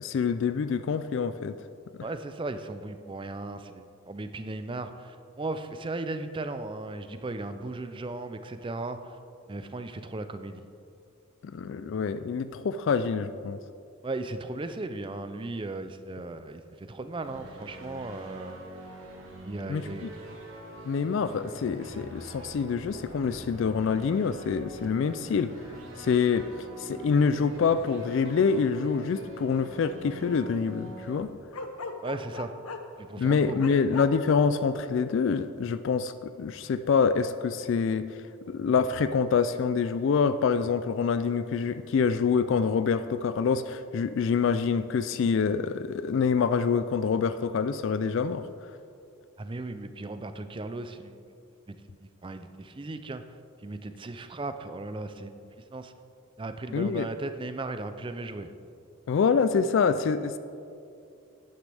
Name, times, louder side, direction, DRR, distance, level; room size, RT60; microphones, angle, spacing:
voice 1, 0.0-1.5 11.4-13.6 19.7-20.1 20.9-25.5 26.0-31.4 33.2-48.5 56.7-57.1 59.1-60.4, left 5 dB, 55° left, 11 dB, 0.3 m, -26 dB
voice 2, 2.0-9.2 9.5-10.7 14.0-18.6 19.4-20.1 32.0-32.5 33.0-33.7 49.4-51.2 51.7-53.2 53.6-55.9 56.4-58.5, right 2 dB, 20° right, 9 dB, 0.4 m, -36 dB
sound 1, 17.2-31.2, right 1 dB, 65° right, 1.5 m, -45 dB
Bark, 31.5-33.0 33.6-34.1, left 3 dB, 80° left, 0.7 m, -37 dB
11.5 x 9.6 x 3.4 m, 2.5 s
head